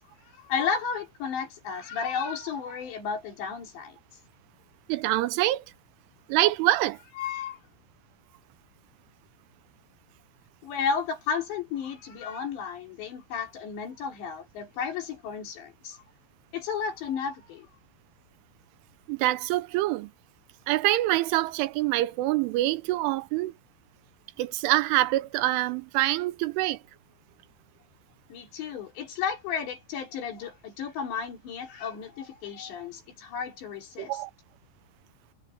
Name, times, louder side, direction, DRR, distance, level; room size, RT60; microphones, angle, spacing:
voice 1, 0.4-4.0 7.2-7.6 10.6-16.0 16.5-17.7 28.3-34.2, left 6 dB, 65° left, 5.8 m, -33 dB
voice 2, 4.9-5.6 6.3-7.0 19.1-20.1 20.7-23.5 24.4-26.8 34.0-34.3, right 17 dB, 85° right, 3.1 m, -25 dB
omnidirectional pair, 5.7 m